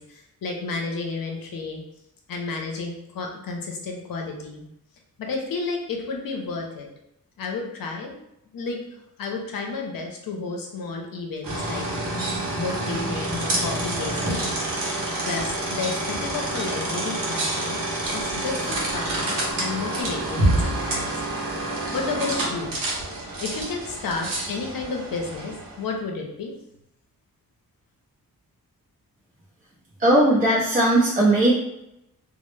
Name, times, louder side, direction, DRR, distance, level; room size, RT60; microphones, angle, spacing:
voice 1, 0.0-1.8 2.3-4.7 5.2-6.9 7.4-8.2 8.5-8.8 9.2-17.8 18.1-21.2 21.9-22.8 23.4-26.5, left 4 dB, 70° left, 1 dB, 0.6 m, -32 dB
sound 1, 11.4-25.9, right 1 dB, 70° right, 0.7 m, -27 dB
voice 2, 30.0-31.5, right 1 dB, 25° right, -7 dB, 0.5 m, -18 dB
2.0 x 2.0 x 3.1 m, 0.82 s
wide cardioid pair, 125°, 35 cm